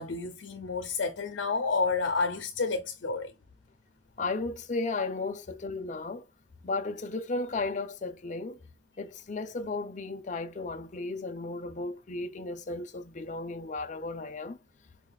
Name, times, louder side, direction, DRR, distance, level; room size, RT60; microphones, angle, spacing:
voice 1, 0.0-3.3, left 4 dB, 85° left, 0.7 m, -30 dB
voice 2, 4.2-6.2 6.6-8.6 9.0-14.6, left 3 dB, 40° left, 0.5 m, -34 dB
4.9 x 2.4 x 3.9 m
head